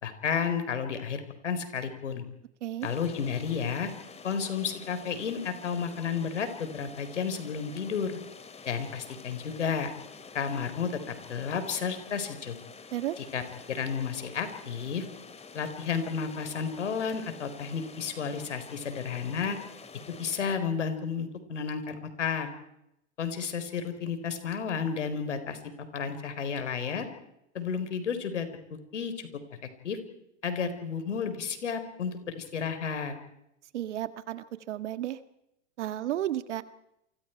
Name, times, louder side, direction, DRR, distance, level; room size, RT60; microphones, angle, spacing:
voice 1, 0.0-2.2 2.8-3.9 4.2-8.2 8.7-9.9 10.3-12.5 13.2-13.4 13.7-15.1 15.5-19.6 20.2-22.5 23.2-25.6 25.9-27.1 27.5-28.5 28.9-29.3 29.8-30.0 30.4-33.2, left 6 dB, 90° left, 9 dB, 4.4 m, -32 dB
sound 1, 2.8-20.4, left 5 dB, 20° left, 2.6 m, -48 dB
voice 2, 33.7-35.2 35.8-36.6, right 12 dB, 75° right, 11 dB, 1.9 m, -33 dB
29.0 x 24.0 x 4.6 m, 0.82 s
hypercardioid pair, 105°, 35 cm